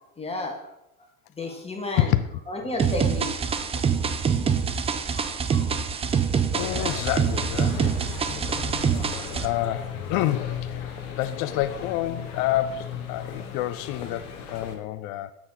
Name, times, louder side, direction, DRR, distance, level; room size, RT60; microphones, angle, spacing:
voice 1, 0.2-0.7 1.4-2.1 2.5-3.4 3.7-3.9 4.2-4.3 5.1-5.7 8.9-9.4, left 2 dB, 15° left, 1 dB, 1.8 m, -33 dB
voice 2, 2.0-2.3 6.5-8.0 9.0-10.8 11.1-15.3, left 13 dB, 45° left, 11 dB, 0.5 m, -28 dB
sound 1, 2.8-9.5, right 6 dB, 15° right, 0.4 m, -25 dB
sound 2, 6.5-14.8, left 7 dB, 70° left, 1.4 m, -36 dB
7.6 x 4.2 x 5.6 m, 0.86 s
hypercardioid pair, 80°, 45 cm